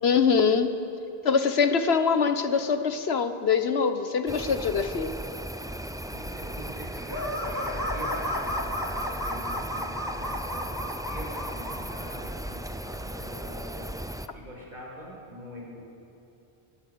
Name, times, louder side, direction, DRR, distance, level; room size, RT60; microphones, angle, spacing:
voice 1, 0.0-0.7 1.2-5.2, left 5 dB, 70° left, 9 dB, 1.3 m, -23 dB
sound 1, 4.3-14.3, right 1 dB, 5° right, 0.4 m, -37 dB
voice 2, 6.1-10.8 11.1-14.0 14.3-16.0, equal, 45° right, -3 dB, 5.5 m, -43 dB
sound 2, 7.1-11.8, left 1 dB, 20° left, 2.1 m, -32 dB
23.0 x 16.5 x 6.9 m, 2.7 s
omnidirectional pair, 1.1 m